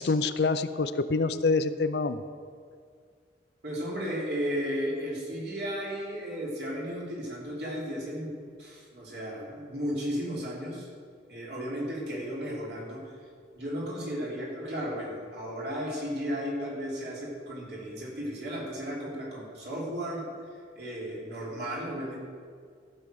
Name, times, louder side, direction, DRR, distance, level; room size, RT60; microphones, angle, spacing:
voice 1, 0.0-2.2, left 3 dB, 65° left, 12 dB, 0.5 m, -26 dB
voice 2, 3.6-8.3 8.6-10.9 11.3-13.0 13.5-20.2 20.7-22.2, equal, 65° right, -4 dB, 3.2 m, -34 dB
14.0 x 6.6 x 6.4 m, 2.1 s
head